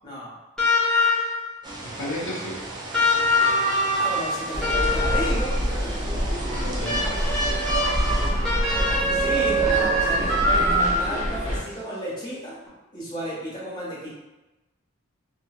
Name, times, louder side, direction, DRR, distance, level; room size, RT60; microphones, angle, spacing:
voice 1, 0.0-0.3 3.9-5.5 8.3-12.5 12.9-14.1, right 1 dB, 20° left, -9 dB, 1.2 m, -33 dB
sound 1, 0.6-1.5 2.9-5.5 6.8-11.3 12.7-12.8, left 1 dB, 5° left, 0.8 m, -23 dB
sound 2, 1.6-8.3, right 2 dB, 20° right, 0.3 m, -37 dB
voice 2, 1.8-2.7 6.5-7.4, left 1 dB, 65° left, -4 dB, 0.6 m, -34 dB
sound 3, 4.5-11.6, equal, 40° right, 0.9 m, -27 dB
2.7 x 2.7 x 2.2 m, 1.0 s
head